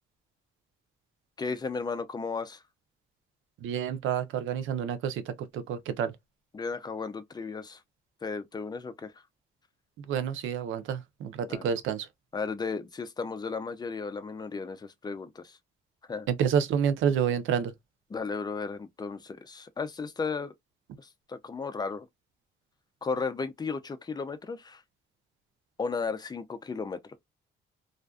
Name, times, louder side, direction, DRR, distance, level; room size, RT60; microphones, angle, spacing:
voice 1, 1.4-2.6 6.5-7.8 8.2-9.1 11.5-11.6 12.3-15.6 16.1-16.3 18.1-20.5 21.0-22.1 23.0-24.8 25.8-27.2, left 4 dB, 20° left, 0.5 m, -34 dB
voice 2, 3.6-6.1 10.0-12.1 16.3-17.7, right 8 dB, 80° right, 0.5 m, -29 dB
2.5 x 2.2 x 2.2 m
cardioid pair, 90°, 20 cm